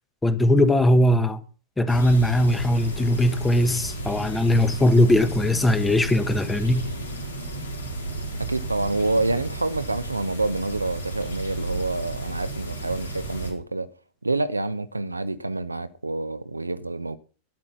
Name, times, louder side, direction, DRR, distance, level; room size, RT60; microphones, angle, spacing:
voice 1, 0.2-1.4 1.8-6.9, left 1 dB, 10° left, 1.2 m, -20 dB
sound 1, 1.9-13.5, right 2 dB, 75° left, 3.5 m, -33 dB
voice 2, 8.4-13.9 14.2-17.2, right 2 dB, 80° right, 0.7 m, -27 dB
12.5 x 8.8 x 5.9 m
figure-of-eight pair, 90°, 0 cm